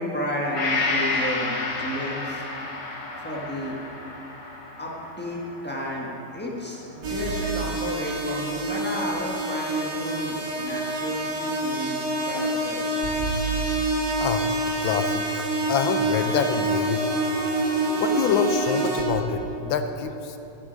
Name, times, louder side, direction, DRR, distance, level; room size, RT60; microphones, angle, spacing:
voice 1, 0.0-2.5 3.2-3.8 4.8-13.1, equal, 10° left, -3 dB, 0.8 m, -32 dB
Gong, 0.6-8.2 8.6-8.7, left 3 dB, 55° left, 1.6 m, -31 dB
sound 1, 7.0-19.0, right 2 dB, 55° right, 2.1 m, -27 dB
voice 2, 14.2-17.2 18.0-20.4, left 6 dB, 70° left, 8 dB, 1.4 m, -26 dB
11.0 x 8.4 x 5.2 m, 2.9 s
omnidirectional pair, 2.4 m